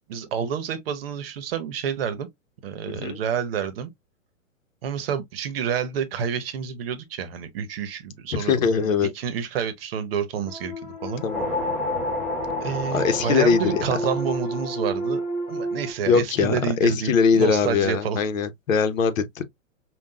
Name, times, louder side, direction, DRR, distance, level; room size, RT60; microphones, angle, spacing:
voice 1, 0.1-2.3 2.6-3.9 4.8-8.6 9.0-10.7 11.0-11.2 12.6-15.2 15.5-18.2, right 7 dB, 45° right, 0.9 m, -28 dB
voice 2, 2.9-3.2 8.4-9.1 11.2-11.5 12.9-13.8 16.1-19.4, left 6 dB, 80° left, 1.0 m, -22 dB
sound 1, 10.5-15.9, right 2 dB, 35° left, 1.2 m, -32 dB
sound 2, 11.0-15.6, left 1 dB, ahead, 0.5 m, -30 dB
5.5 x 2.3 x 2.2 m
hypercardioid pair, 150°, 39 cm